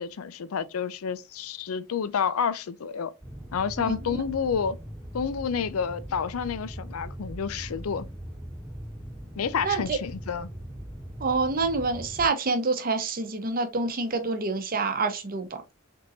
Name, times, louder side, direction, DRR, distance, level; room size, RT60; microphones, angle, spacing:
voice 1, 0.0-3.1 3.5-4.8 5.1-8.1 9.4-10.5, left 6 dB, 80° left, 0.5 m, -29 dB
sound 1, 3.2-12.3, equal, 15° right, 1.1 m, -40 dB
voice 2, 3.8-4.2 9.6-10.0 11.2-15.6, right 3 dB, 40° right, 0.8 m, -27 dB
3.9 x 3.6 x 2.6 m
head